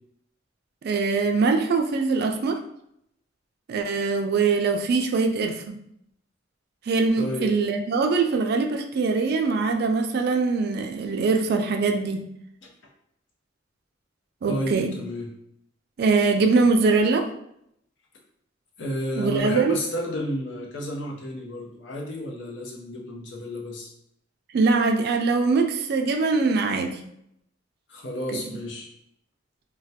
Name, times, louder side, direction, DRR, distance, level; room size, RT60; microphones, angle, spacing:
voice 1, 0.8-2.6 3.7-5.8 6.9-12.3 14.4-14.9 16.0-17.3 19.2-19.7 24.5-27.0 28.3-28.4, right 4 dB, 55° right, 5 dB, 0.3 m, -22 dB
voice 2, 7.2-7.5 14.5-15.3 18.8-23.9 27.9-28.9, equal, 75° left, 0 dB, 0.7 m, -31 dB
3.2 x 2.2 x 2.7 m, 0.75 s
head